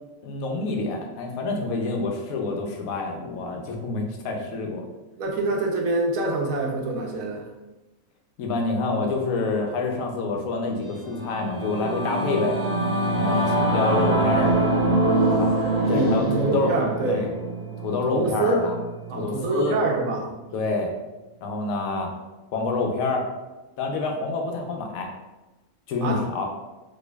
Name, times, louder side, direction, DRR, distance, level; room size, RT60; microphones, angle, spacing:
voice 1, 0.2-4.8 8.4-12.6 13.1-14.8 15.3-15.6 15.9-16.7 17.0-17.3 17.8-18.7 19.2-19.8 20.5-20.9 21.4-22.1 22.5-23.3 23.8-25.1 25.9-26.5, left 3 dB, 80° left, 2 dB, 1.0 m, -27 dB
voice 2, 3.2-3.7 5.2-7.5 13.2-13.8 15.9-17.2 18.1-18.6 19.1-20.3 26.0-26.2, right 2 dB, 75° right, 0 dB, 1.0 m, -26 dB
Singing / Musical instrument, 10.9-20.6, right 2 dB, 55° right, 0.4 m, -25 dB
4.4 x 2.6 x 2.2 m, 1.1 s
omnidirectional pair, 1.5 m